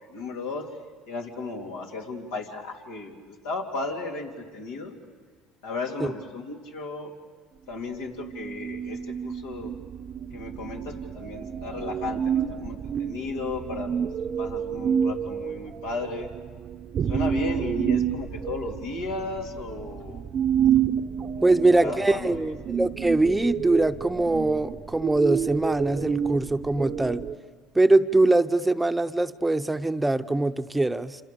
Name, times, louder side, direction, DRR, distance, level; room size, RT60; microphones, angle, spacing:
voice 1, 0.1-0.7 1.1-4.9 5.6-7.1 7.7-9.7 10.3-13.9 14.4-16.3 17.1-20.2 21.4-22.5, left 3 dB, 85° left, 0 dB, 3.0 m, -35 dB
sound 1, 8.2-27.3, right 8 dB, 45° right, 0.7 m, -29 dB
voice 2, 21.4-27.2 27.7-31.2, right 2 dB, 10° right, 10 dB, 0.8 m, -22 dB
27.5 x 26.5 x 6.9 m, 1.5 s
supercardioid pair, 80°, 0 cm